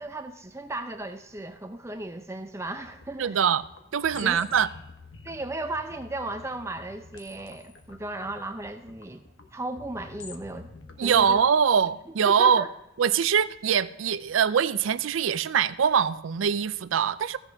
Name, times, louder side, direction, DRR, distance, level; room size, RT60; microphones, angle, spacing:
voice 1, 0.0-3.4 4.2-4.4 5.2-9.2 9.5-10.7 11.0-11.4 12.2-12.7, right 2 dB, 15° right, 0.5 m, -35 dB
sound 1, 2.6-11.4, left 4 dB, 75° left, 1.1 m, -49 dB
voice 2, 3.2-3.6 3.9-4.7 11.0-12.7 13.0-17.4, right 7 dB, 80° right, 0.4 m, -23 dB
15.0 x 8.1 x 3.5 m
head